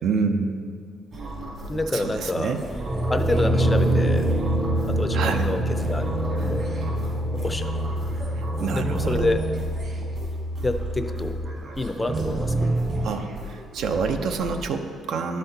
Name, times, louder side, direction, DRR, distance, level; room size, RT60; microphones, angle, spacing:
voice 1, 0.0-0.6 1.9-2.6 5.1-5.5 8.6-9.3 13.0-15.4, right 5 dB, 75° right, 6 dB, 0.5 m, -27 dB
sound 1, 1.1-14.7, right 1 dB, 50° right, 1.5 m, -37 dB
sound 2, 1.6-1.7 2.7-9.9 12.0-13.1, right 2 dB, 20° right, 0.6 m, -26 dB
voice 2, 1.7-2.6 3.1-4.3 4.9-6.7 7.4-7.7 8.6-9.4 10.6-11.4 11.8-12.7, left 2 dB, 20° left, 8 dB, 0.4 m, -28 dB
Piano, 3.5-11.6, equal, 75° left, 0.4 m, -29 dB
11.5 x 4.2 x 3.9 m, 2.3 s
cardioid pair, 90°, 0 cm